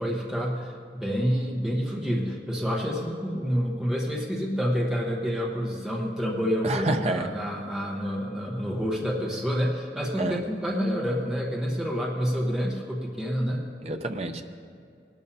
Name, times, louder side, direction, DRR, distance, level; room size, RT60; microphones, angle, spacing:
voice 1, 0.0-13.6, equal, 5° right, -2 dB, 1.1 m, -28 dB
voice 2, 6.6-7.3 10.2-10.4 13.8-14.4, right 2 dB, 35° right, 6 dB, 0.6 m, -28 dB
19.5 x 12.0 x 2.8 m, 2.3 s
head